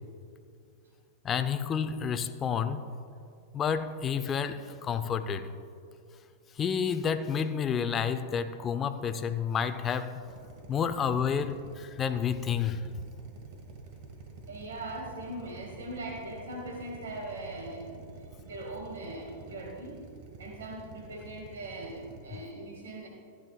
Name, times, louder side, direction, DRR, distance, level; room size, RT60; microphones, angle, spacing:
voice 1, 1.2-2.8 3.5-5.5 6.6-10.2 10.7-12.8, left 7 dB, 25° left, 9 dB, 0.5 m, -30 dB
Drill, 10.2-22.2, right 3 dB, 55° right, 1.5 m, -48 dB
voice 2, 14.4-20.0 20.4-23.1, right 2 dB, 80° right, 1 dB, 1.2 m, -40 dB
15.0 x 9.9 x 2.3 m, 2.5 s
hypercardioid pair, 105°, 0 cm